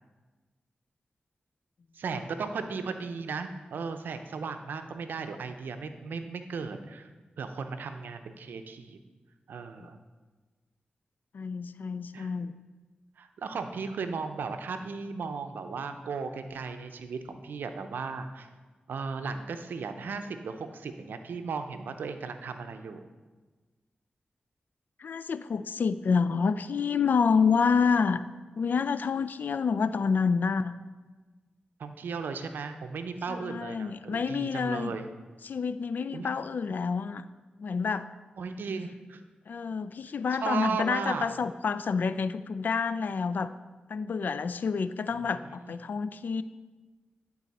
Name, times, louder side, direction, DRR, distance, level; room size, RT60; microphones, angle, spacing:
voice 1, 1.9-7.1 7.4-9.0 9.5-10.0 12.1-12.3 13.2-18.5 18.9-23.0 31.8-35.1 36.1-36.3 38.4-39.2 40.4-41.3 45.5-45.7, right 5 dB, 85° right, 8 dB, 0.5 m, -36 dB
voice 2, 11.3-12.5 25.0-28.2 28.6-30.7 33.3-35.0 35.4-37.2 37.6-38.1 39.5-43.5 43.9-46.4, left 5 dB, 70° left, 13 dB, 0.3 m, -28 dB
10.5 x 4.1 x 4.2 m, 1.3 s
cardioid pair, 45°, 3 cm